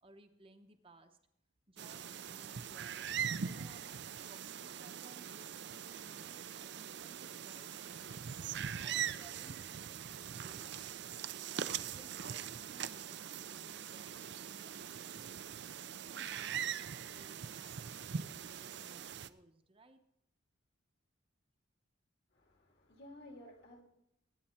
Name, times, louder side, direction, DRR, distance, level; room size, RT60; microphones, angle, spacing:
voice 1, 0.0-1.2 1.7-3.1 3.4-3.9 4.2-8.3 8.8-11.2 11.5-15.7 16.1-20.0, right 2 dB, 25° right, 6 dB, 0.8 m, -61 dB
sound 1, 1.8-19.3, right 8 dB, 55° right, 0.5 m, -42 dB
voice 2, 22.3-23.8, left 1 dB, 55° left, 2 dB, 2.5 m, -54 dB
21.0 x 9.2 x 4.3 m, 0.82 s
head